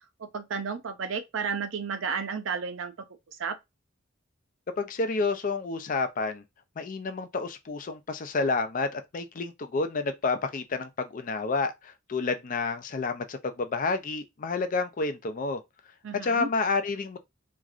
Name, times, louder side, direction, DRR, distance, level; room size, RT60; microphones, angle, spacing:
voice 1, 0.2-2.9 3.4-3.6 16.0-16.5, right 5 dB, 85° right, 0.5 m, -32 dB
voice 2, 4.8-6.4 6.8-15.6 16.2-17.2, left 3 dB, 45° left, 0.4 m, -29 dB
3.0 x 2.4 x 2.4 m
head